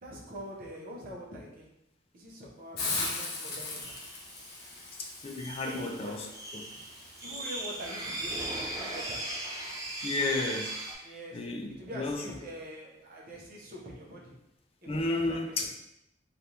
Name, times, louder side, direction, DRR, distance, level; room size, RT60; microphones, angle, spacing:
voice 1, 0.0-1.7 2.1-4.0 5.7-6.2 7.2-9.2 11.0-11.4 11.8-14.3 14.8-15.7, equal, 50° right, -3 dB, 0.8 m, -44 dB
Hiss, 2.8-8.4, left 3 dB, 55° left, 0.7 m, -39 dB
sound 1, 3.8-10.9, right 1 dB, 15° right, 0.6 m, -39 dB
voice 2, 5.0-6.2 6.5-6.6 10.0-10.7 11.3-12.2 14.9-15.7, left 2 dB, 30° left, 2 dB, 0.4 m, -32 dB
3.3 x 2.4 x 2.8 m, 0.84 s
head